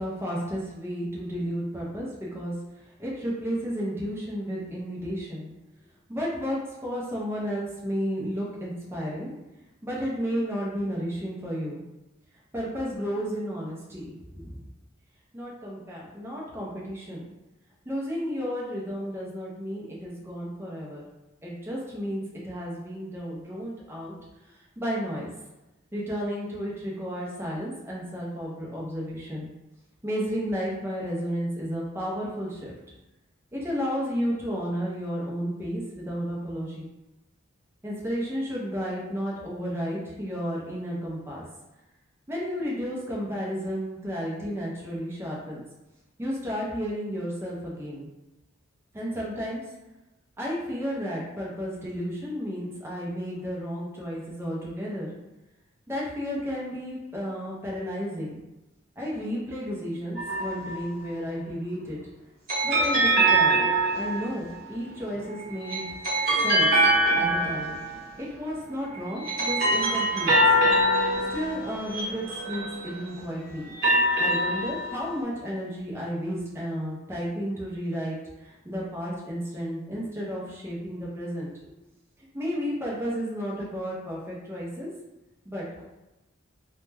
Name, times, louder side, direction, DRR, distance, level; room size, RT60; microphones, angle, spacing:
voice 1, 0.0-2.5 3.0-5.5 6.1-9.3 9.8-11.8 12.5-14.6 15.3-17.2 17.9-21.1 21.4-24.1 24.8-25.3 25.9-29.5 30.0-32.7 33.5-36.9 37.8-41.4 42.3-45.6 46.2-48.1 48.9-49.6 50.4-55.1 55.9-58.4 59.0-62.0 62.6-63.7 63.9-65.8 66.4-66.7 67.1-67.8 68.2-70.5 71.3-73.7 74.2-81.5 82.3-84.9 85.5-85.8, equal, 10° right, -5 dB, 0.5 m, -32 dB
sound 1, 60.2-60.9 62.5-64.5 65.4-68.2 68.9-73.0 73.6-75.2, right 1 dB, 45° right, 0.9 m, -24 dB
2.1 x 2.1 x 3.2 m, 1.0 s
head